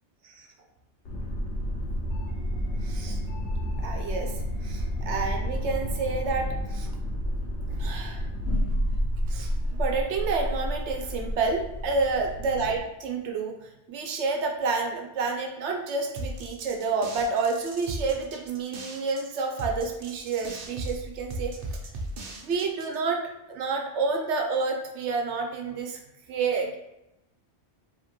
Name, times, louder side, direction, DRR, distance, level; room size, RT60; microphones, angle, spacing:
sound 1, 1.0-12.8, equal, 85° left, 1.1 m, -30 dB
voice 1, 2.8-3.2 3.8-4.3 4.6-6.9 7.7-8.2 9.3-9.5 9.8-21.8 22.4-26.0 26.3-26.8, right 4 dB, 85° right, 2 dB, 1.0 m, -29 dB
sound 2, 16.2-23.0, right 1 dB, 55° right, 0.8 m, -37 dB
4.9 x 2.8 x 3.0 m, 0.91 s
omnidirectional pair, 1.2 m